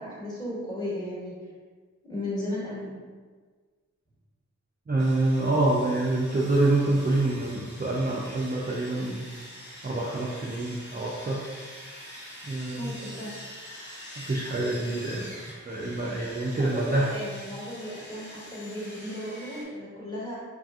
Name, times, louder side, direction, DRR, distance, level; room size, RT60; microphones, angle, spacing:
voice 1, 0.0-1.3 2.1-3.1 12.8-13.3 16.9-20.4, left 1 dB, 15° left, -8 dB, 1.3 m, -35 dB
voice 2, 4.9-9.3 9.8-11.4 12.5-12.9 14.2-15.3 15.7-17.1, right 2 dB, 30° right, -5 dB, 0.4 m, -26 dB
Sawing, 5.0-19.6, equal, 35° left, 0.8 m, -45 dB
3.2 x 2.6 x 2.4 m, 1.5 s
wide cardioid pair, 55°, 31 cm